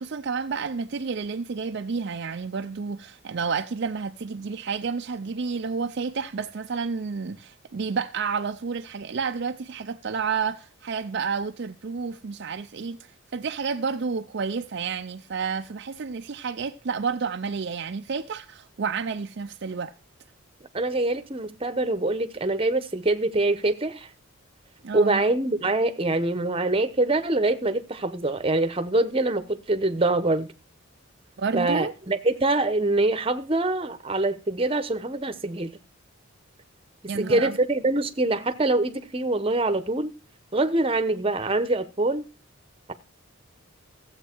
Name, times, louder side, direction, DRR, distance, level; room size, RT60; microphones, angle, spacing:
voice 1, 0.0-19.9 24.8-25.2 31.4-31.9 37.1-37.6, right 5 dB, 55° right, 0.5 m, -30 dB
voice 2, 20.7-24.1 24.9-30.5 31.5-35.8 37.1-40.1 40.5-42.2, right 2 dB, 25° right, 0.9 m, -24 dB
14.5 x 8.1 x 4.5 m
head